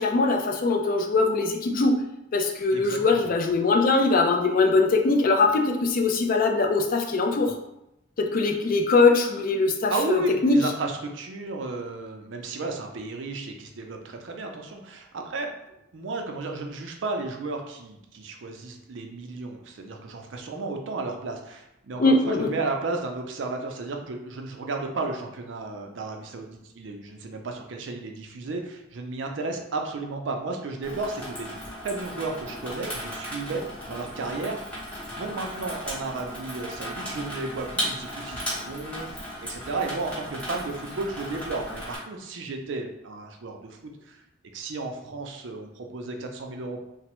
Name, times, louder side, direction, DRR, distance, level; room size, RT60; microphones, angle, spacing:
voice 1, 0.0-2.0 2.3-7.5 8.2-10.6 22.0-22.5, left 3 dB, 45° left, 4 dB, 0.3 m, -22 dB
voice 2, 2.7-3.3 9.9-15.5 15.9-44.2 44.5-46.8, right 3 dB, 70° right, 3 dB, 0.4 m, -33 dB
Water tap faucet / Sink (filling or washing), 30.8-42.0, equal, 5° left, 0.8 m, -36 dB
3.2 x 2.0 x 2.9 m, 0.86 s
head